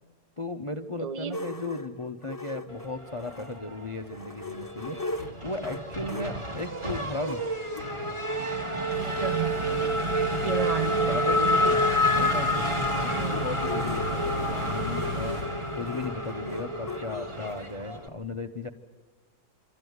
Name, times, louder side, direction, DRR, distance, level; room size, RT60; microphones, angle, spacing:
voice 1, 0.4-5.0 5.4-7.5 9.6-9.9 10.3-10.5 11.1-18.7, left 2 dB, 35° left, 7 dB, 0.5 m, -36 dB
voice 2, 1.0-1.4 6.1-6.4 9.0-9.7 10.4-11.3 13.1-13.5, right 6 dB, 65° right, 14 dB, 0.3 m, -33 dB
sound 1, 1.3-3.6 4.0-7.9 8.6-8.7 9.0-9.1 9.3-17.6, left 3 dB, 15° left, 1.1 m, -40 dB
Race car auto racing / Accelerating revving vroom, 3.1-4.1 4.4-18.1, equal, 20° right, 1.5 m, -29 dB
sound 2, 8.9-15.4, left 1 dB, 85° right, 5.6 m, -36 dB
25.5 x 14.0 x 9.4 m, 1.4 s
omnidirectional pair, 1.7 m